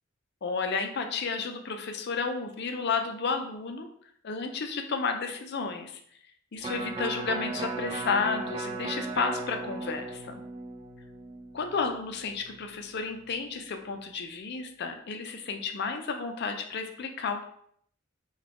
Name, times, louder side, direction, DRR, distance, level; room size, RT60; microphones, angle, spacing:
voice 1, 0.4-3.9 4.2-6.0 6.5-10.4 11.5-17.4, left 4 dB, 55° left, 6 dB, 0.5 m, -32 dB
Electric guitar, 6.6-12.8 13.2-13.3, right 3 dB, 25° right, 0.3 m, -37 dB
4.1 x 2.3 x 2.9 m, 0.65 s
head